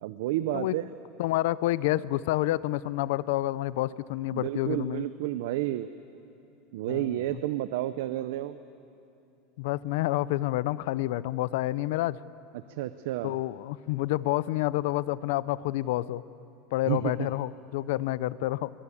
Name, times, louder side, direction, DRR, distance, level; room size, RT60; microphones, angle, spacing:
voice 1, 0.0-0.8 4.3-5.9 6.7-8.6 12.8-13.3 16.9-17.3, right 14 dB, 65° right, 12 dB, 0.6 m, -30 dB
voice 2, 1.2-5.1 6.9-7.4 9.6-12.2 13.2-16.2 16.7-18.7, left 16 dB, 60° left, 18 dB, 0.5 m, -29 dB
23.0 x 20.5 x 8.5 m, 2.8 s
supercardioid pair, 175°, 0 cm